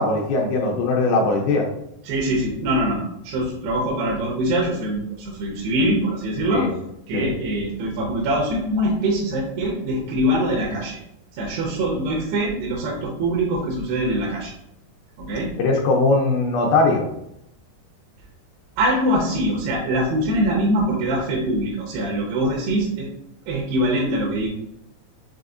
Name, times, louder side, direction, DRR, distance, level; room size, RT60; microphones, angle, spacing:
voice 1, 0.0-1.7 6.5-6.7 7.1-7.3 15.6-17.1, left 3 dB, 85° left, 1 dB, 2.1 m, -20 dB
voice 2, 2.0-6.7 7.1-11.0 11.4-14.5 15.2-15.5 18.8-23.1 23.5-24.5, right 1 dB, 80° right, -3 dB, 2.7 m, -23 dB
6.8 x 2.7 x 2.5 m, 0.80 s
omnidirectional pair, 5.0 m